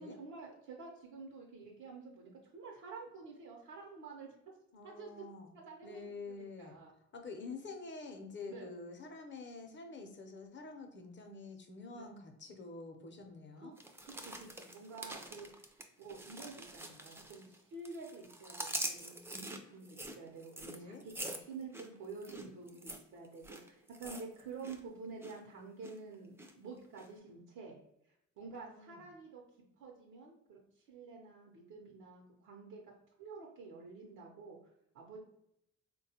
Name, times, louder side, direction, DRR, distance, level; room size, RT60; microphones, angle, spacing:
voice 1, 0.0-4.3 4.8-5.2 5.5-6.9 8.5-8.7 11.9-12.1 13.6-13.7 14.0-15.4 16.0-27.8 28.4-29.4 29.8-30.6 30.9-34.6 34.9-35.2, right 4 dB, 80° right, -1 dB, 0.7 m, -49 dB
voice 2, 4.7-5.6 5.8-6.7 7.1-13.8 20.7-21.0 28.5-29.0, left 3 dB, 40° left, 4 dB, 0.6 m, -48 dB
sound 1, 13.8-17.6 17.8-24.8 25.0-25.4 25.8-26.5 27.0-27.1, right 1 dB, 10° right, 0.4 m, -45 dB
3.6 x 2.2 x 2.7 m, 0.79 s
cardioid pair, 90°, 30 cm